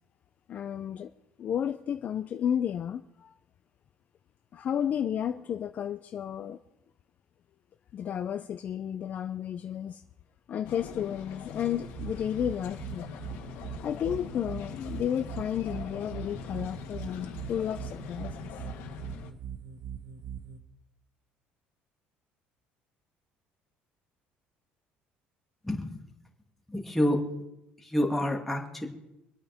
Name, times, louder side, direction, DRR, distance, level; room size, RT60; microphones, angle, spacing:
voice 1, 0.5-1.1 1.4-3.3 4.5-6.6 7.9-10.0 10.5-13.1 13.8-18.5, left 9 dB, 40° left, 8 dB, 0.5 m, -32 dB
sound 1, 10.6-19.3, left 7 dB, 80° left, 1.7 m, -43 dB
sound 2, 11.8-20.6, right 8 dB, 65° right, 1.2 m, -41 dB
voice 2, 26.7-27.2 27.9-28.9, left 1 dB, 5° left, 0 dB, 2.1 m, -27 dB
25.5 x 9.0 x 3.5 m, 0.87 s
cardioid pair, 130°, 4 cm